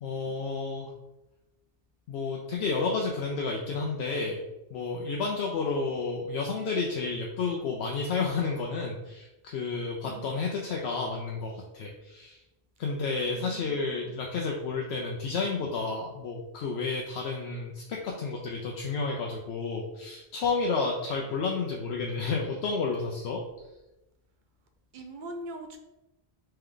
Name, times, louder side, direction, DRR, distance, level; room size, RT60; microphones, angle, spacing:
voice 1, 0.0-0.9 2.1-4.4 4.7-12.4 12.8-23.4, left 4 dB, 80° left, -1 dB, 0.8 m, -31 dB
voice 2, 13.3-14.2 21.2-21.4 24.9-25.8, right 2 dB, 55° right, 5 dB, 0.6 m, -43 dB
3.4 x 3.4 x 3.6 m, 1.0 s
omnidirectional pair, 1.1 m